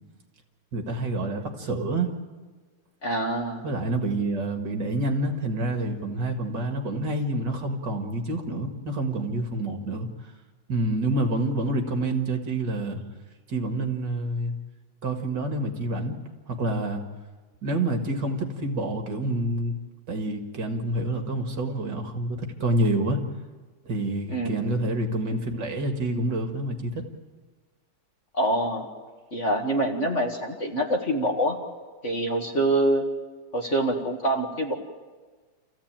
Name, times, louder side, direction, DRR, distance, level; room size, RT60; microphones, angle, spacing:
voice 1, 0.7-2.1 3.6-10.1 10.7-13.0 13.5-14.6 15.0-16.1 16.5-17.0 17.6-19.8 20.1-23.2 23.8-27.0, right 2 dB, 60° right, 4 dB, 2.5 m, -27 dB
voice 2, 3.0-3.6 24.3-24.6 28.3-28.9 29.3-31.6 32.0-33.0 33.5-34.7, right 1 dB, 35° left, 2 dB, 2.1 m, -25 dB
28.0 x 15.0 x 8.9 m, 1.4 s
omnidirectional pair, 2.2 m